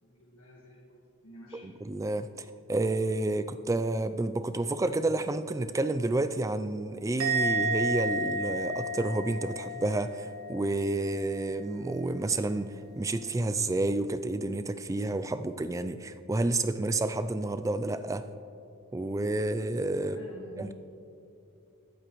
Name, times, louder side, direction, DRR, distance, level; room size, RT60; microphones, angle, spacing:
voice 1, 0.0-1.6 20.0-20.7, left 1 dB, 70° left, -4 dB, 1.6 m, -51 dB
voice 2, 1.6-18.3 18.9-20.2 20.6-20.7, right 2 dB, 15° right, 11 dB, 0.3 m, -30 dB
Musical instrument, 7.2-10.6 10.9-11.3, right 2 dB, 65° right, 2.0 m, -31 dB
22.5 x 7.9 x 3.1 m, 2.7 s
head